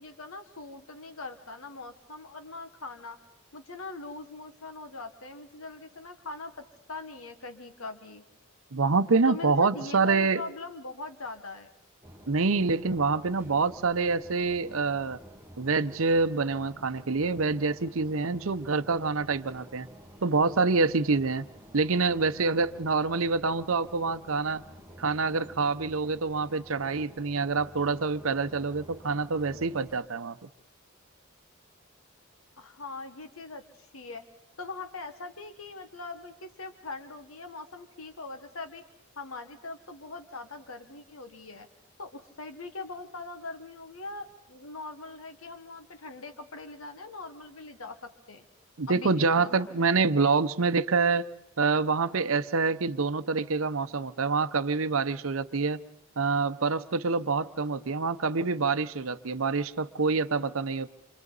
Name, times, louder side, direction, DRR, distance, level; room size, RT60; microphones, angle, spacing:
voice 1, 0.0-3.2 3.5-8.2 9.3-11.7 32.6-34.2 34.6-38.8 39.2-41.7 42.0-48.4 48.9-49.8, left 3 dB, 80° left, 8 dB, 1.5 m, -41 dB
voice 2, 8.7-10.4 12.3-15.2 15.6-19.9 20.2-21.4 21.7-24.6 25.0-30.4 48.8-51.3 51.6-55.8 56.2-60.9, right 4 dB, 70° right, 10 dB, 0.8 m, -26 dB
sound 1, 12.0-30.0, equal, 10° right, 1.4 m, -51 dB
29.0 x 26.0 x 4.1 m, 0.75 s
head